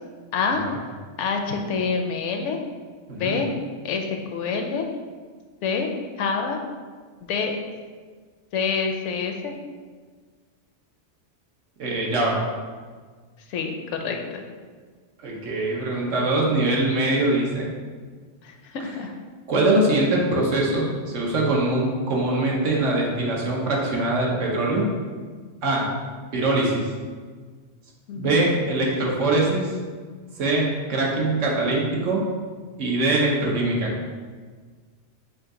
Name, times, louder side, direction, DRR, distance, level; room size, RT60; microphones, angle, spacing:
voice 1, 0.3-0.7 1.2-2.6 3.2-3.5 3.8-4.1 4.3-4.8 5.6-5.9 6.2-6.6 7.2-7.5 8.5-9.5 13.5-14.4 18.4-19.1 28.1-28.5, left 5 dB, 75° left, 3 dB, 0.9 m, -26 dB
voice 2, 11.8-12.4 15.2-17.7 19.5-24.9 25.6-25.9 26.3-26.9 28.2-29.7 30.4-32.2 32.8-33.9, right 2 dB, 90° right, -2 dB, 1.2 m, -22 dB
5.1 x 2.8 x 3.7 m, 1.5 s
omnidirectional pair, 1.2 m